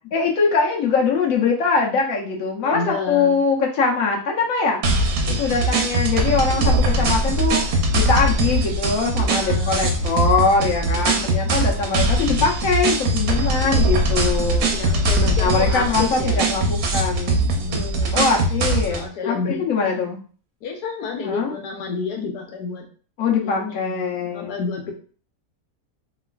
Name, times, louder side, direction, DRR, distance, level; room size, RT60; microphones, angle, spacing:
voice 1, 0.1-4.8 5.3-14.7 15.4-17.4 17.7-20.2 21.2-21.5 23.2-24.6, left 4 dB, 65° left, -1 dB, 1.0 m, -22 dB
voice 2, 2.6-3.5 9.3-10.2 14.7-16.5 17.4-18.0 18.9-19.9 20.6-22.8 23.4-24.9, left 4 dB, 85° left, 1 dB, 1.3 m, -30 dB
sound 1, 4.8-19.1, right 2 dB, 70° right, 1.0 m, -21 dB
2.9 x 2.4 x 2.3 m, 0.41 s
omnidirectional pair, 1.7 m